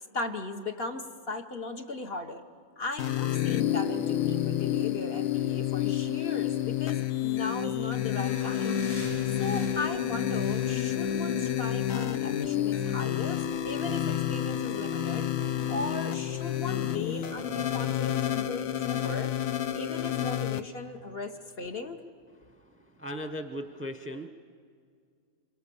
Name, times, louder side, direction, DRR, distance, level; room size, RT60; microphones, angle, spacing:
voice 1, 0.1-2.4 2.8-8.8 9.4-15.3 15.7-19.3 19.7-22.0, left 3 dB, 45° left, 5 dB, 1.2 m, -37 dB
sound 1, 3.0-20.6, left 11 dB, 70° left, 1.2 m, -29 dB
sound 2, 3.4-17.7, right 1 dB, 85° left, 5.9 m, -49 dB
voice 2, 23.0-24.3, equal, 10° right, 8 dB, 0.7 m, -37 dB
26.5 x 24.5 x 6.9 m, 2.2 s
omnidirectional pair, 1.5 m